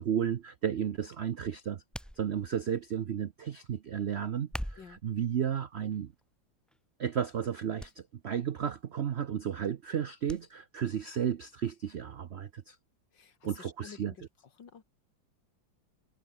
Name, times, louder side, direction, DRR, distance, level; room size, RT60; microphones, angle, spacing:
voice 1, 0.0-1.8 2.2-6.1 7.0-12.8 13.4-14.1, right 9 dB, 85° right, 0.5 m, -33 dB
sound 1, 1.9-2.7 4.4-5.1 5.9-6.2 6.7-6.8 7.8-8.0 8.3-8.4 10.3-10.4 10.8-10.9, equal, ahead, 2.8 m, -41 dB
voice 2, 13.1-14.3 14.6-14.8, left 6 dB, 65° left, 2.6 m, -51 dB
omnidirectional pair, 2.1 m